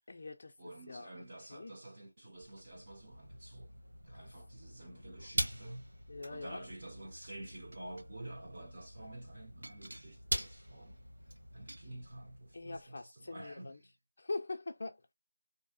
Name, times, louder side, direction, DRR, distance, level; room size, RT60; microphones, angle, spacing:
voice 1, 0.1-1.1 1.5-1.7 4.9-5.3 6.1-6.6 12.5-13.8 14.2-15.1, left 3 dB, 35° left, 0.5 m, -43 dB
voice 2, 0.6-5.9 6.3-11.0 11.5-13.9, right 1 dB, 25° right, 0.6 m, -50 dB
sound 1, 2.3-12.8, equal, 50° right, 1.2 m, -44 dB
sound 2, 7.7-8.1 9.6-11.9 12.9-13.0 13.4-13.5, right 1 dB, 85° right, 0.3 m, -53 dB
2.6 x 2.1 x 2.5 m
figure-of-eight pair, 180°, 0 cm